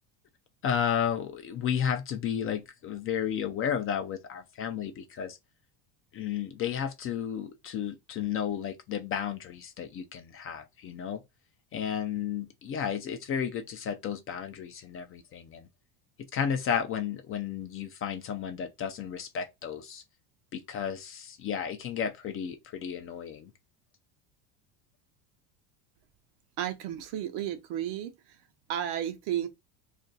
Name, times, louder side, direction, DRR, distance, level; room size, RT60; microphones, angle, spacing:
voice 1, 0.6-5.4 6.1-11.2 11.7-15.7 16.3-20.0 20.5-23.5, left 8 dB, 30° left, 0.4 m, -33 dB
voice 2, 26.6-28.4 28.7-29.5, right 10 dB, 65° right, 0.7 m, -33 dB
2.5 x 2.2 x 3.8 m
supercardioid pair, 105°, 44 cm